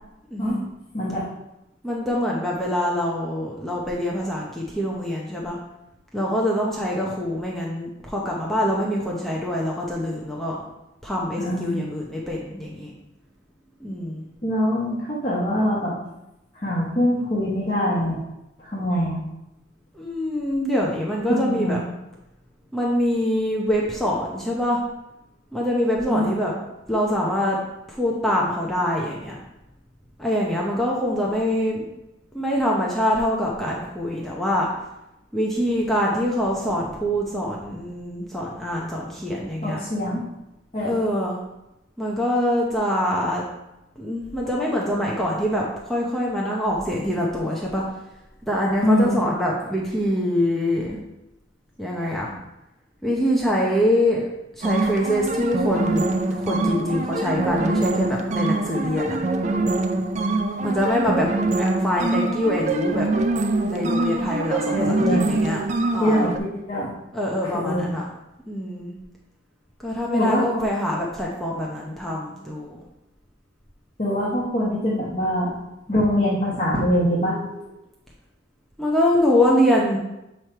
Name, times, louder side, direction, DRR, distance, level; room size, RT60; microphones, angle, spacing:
voice 1, 0.3-0.6 1.8-5.6 6.1-10.6 11.0-12.9 13.8-14.3 20.0-21.8 22.7-24.8 25.5-26.5 26.9-27.6 27.9-29.3 30.2-31.9 32.3-34.7 35.3-39.8 40.8-41.4 42.0-43.4 44.0-47.8 48.4-51.0 51.8-52.3 53.0-54.3 54.5-59.2 60.6-61.3 61.6-63.1 63.6-65.6 65.9-66.2 67.1-68.0 68.5-68.9 69.8-72.8 78.8-80.0, equal, ahead, -4 dB, 0.7 m, -24 dB
voice 2, 11.4-11.8 14.4-15.9 16.6-18.2 18.6-19.2 21.3-21.8 26.1-26.4 39.6-40.2 40.7-41.0 48.8-49.1 64.7-65.2 66.0-66.9 67.4-67.9 70.1-70.4 74.0-75.5 75.9-77.7, equal, 30° left, -7 dB, 1.1 m, -23 dB
sound 1, 54.6-66.4, right 2 dB, 40° right, 0.4 m, -24 dB
7.4 x 3.2 x 4.4 m, 0.90 s
head